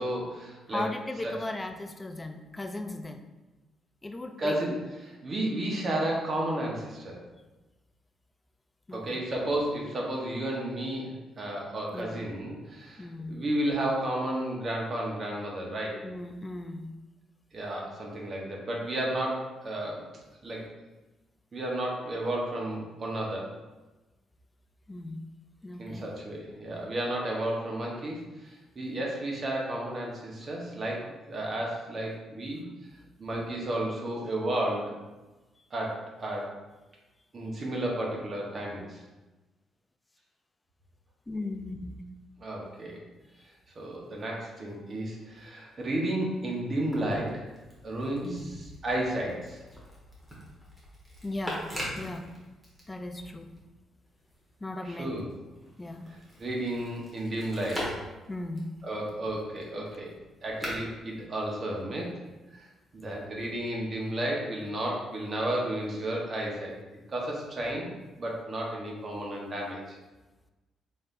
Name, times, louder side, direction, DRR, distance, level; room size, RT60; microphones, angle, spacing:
voice 1, 0.0-0.9 1.2-1.3 4.4-7.2 8.9-16.0 17.5-20.6 21.5-23.5 25.8-32.7 33.2-34.9 35.7-36.5 37.3-39.0 42.4-43.0 43.8-47.5 47.8-49.6 54.8-55.3 56.4-57.9 58.8-60.1 60.4-62.2 62.5-62.6 62.9-66.7 67.1-67.9 68.2-70.0, right 1 dB, 40° right, -2 dB, 1.0 m, -32 dB
voice 2, 0.7-3.2 4.0-4.6 8.9-9.1 11.9-12.2 13.0-13.3 16.0-16.9 24.9-25.2 25.6-26.1 41.3-42.0 48.2-48.6 51.2-51.6 52.0-52.3 52.9-53.5 54.6-55.1 55.8-56.1 58.3-58.7, left 2 dB, 20° left, 6 dB, 0.4 m, -37 dB
sound 1, 46.6-53.6 54.0-62.1 63.0-63.8, equal, 10° right, 1.4 m, -43 dB
4.2 x 3.3 x 2.5 m, 1.1 s
cardioid pair, 90°, 0 cm